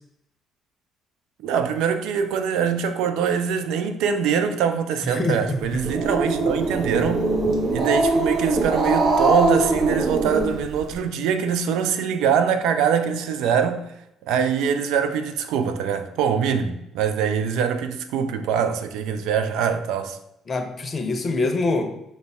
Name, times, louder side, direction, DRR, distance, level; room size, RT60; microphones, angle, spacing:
voice 1, 1.4-7.3 7.7-13.9 14.3-20.2, right 7 dB, 65° right, 0.3 m, -23 dB
voice 2, 5.0-5.6 20.5-21.9, left 3 dB, 35° left, 0.6 m, -24 dB
Growling, 5.6-11.0, right 2 dB, 50° right, 0.8 m, -22 dB
5.1 x 2.1 x 3.4 m
figure-of-eight pair, 50°, 0 cm